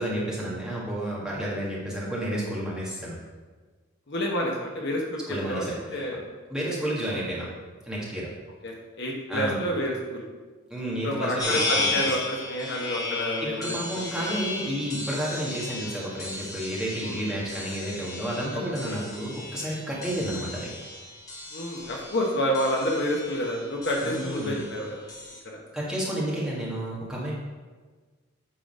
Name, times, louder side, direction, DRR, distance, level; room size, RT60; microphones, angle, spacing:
voice 1, 0.0-3.1 5.3-6.1 6.5-7.5 7.9-8.3 9.3-9.6 10.7-12.2 13.4-20.7 24.0-24.6 25.7-27.3, right 1 dB, 5° right, -6 dB, 1.5 m, -31 dB
voice 2, 4.1-6.2 7.0-7.2 8.6-10.2 11.0-13.8 17.0-17.2 18.5-19.0 21.5-25.0 25.4-25.6, equal, 50° left, 0 dB, 1.0 m, -29 dB
sound 1, 11.4-25.4, left 2 dB, 15° left, 1.0 m, -35 dB
8.7 x 3.8 x 5.2 m, 1.4 s
head